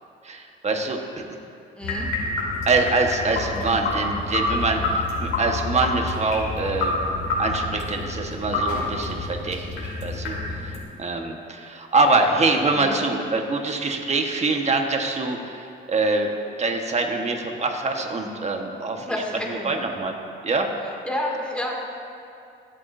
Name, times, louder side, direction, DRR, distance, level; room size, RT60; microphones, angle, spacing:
voice 1, 0.2-1.0 2.7-7.0 7.4-16.3 16.6-19.1 19.5-20.2 20.4-20.7, right 3 dB, 35° right, 3 dB, 1.4 m, -24 dB
sound 1, 1.8-10.8, left 2 dB, 90° left, 2.8 m, -28 dB
voice 2, 1.8-2.1 12.8-13.0 19.0-19.7 21.1-21.8, left 1 dB, 5° left, -2 dB, 2.4 m, -29 dB
24.5 x 8.3 x 2.7 m, 2.5 s
cardioid pair, 90°, 20 cm